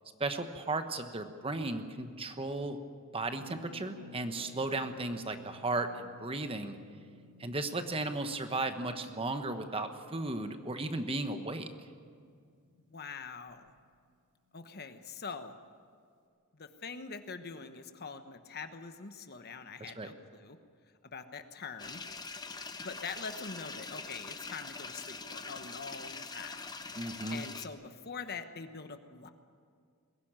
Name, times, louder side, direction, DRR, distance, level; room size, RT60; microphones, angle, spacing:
voice 1, 0.2-2.8 3.1-6.8 7.4-11.7 20.0-20.1 27.0-27.4, right 2 dB, 25° right, 8 dB, 1.1 m, -35 dB
Harp, 3.3-13.0 13.2-13.3 13.5-13.8, left 2 dB, 75° right, 4.4 m, -56 dB
voice 2, 12.9-13.7 14.5-15.5 16.5-20.6 21.0-22.0 22.8-26.7 27.0-29.3, left 5 dB, 45° left, 8 dB, 1.2 m, -44 dB
sound 1, 21.8-27.7, left 4 dB, 20° left, 0.8 m, -43 dB
22.0 x 16.5 x 8.9 m, 2.2 s
head